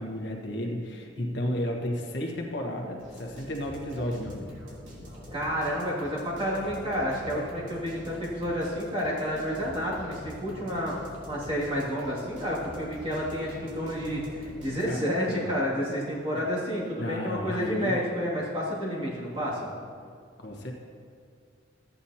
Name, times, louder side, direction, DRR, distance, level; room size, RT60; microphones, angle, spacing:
voice 1, 0.0-4.5 14.8-15.5 17.0-17.9 20.4-20.7, left 1 dB, 65° left, 1 dB, 1.4 m, -33 dB
sound 1, 3.0-15.2, left 1 dB, 85° right, 2.8 m, -45 dB
voice 2, 5.3-19.7, equal, 30° right, -7 dB, 2.4 m, -30 dB
13.5 x 9.1 x 2.9 m, 2.2 s
head